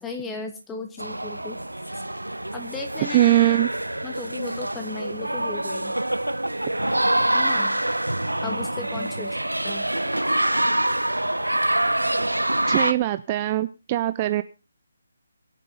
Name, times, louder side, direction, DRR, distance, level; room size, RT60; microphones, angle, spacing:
voice 1, 0.0-1.6 2.5-3.2 4.0-5.9 7.3-7.8 8.4-9.3 9.6-9.9, left 4 dB, 10° left, 4 dB, 2.4 m, -35 dB
sound 1, 1.0-12.9, right 1 dB, 85° right, 1.1 m, -25 dB
voice 2, 3.0-3.7 12.7-14.4, right 15 dB, 25° right, 12 dB, 0.6 m, -21 dB
22.5 x 8.3 x 4.1 m, 0.31 s
figure-of-eight pair, 145°, 0 cm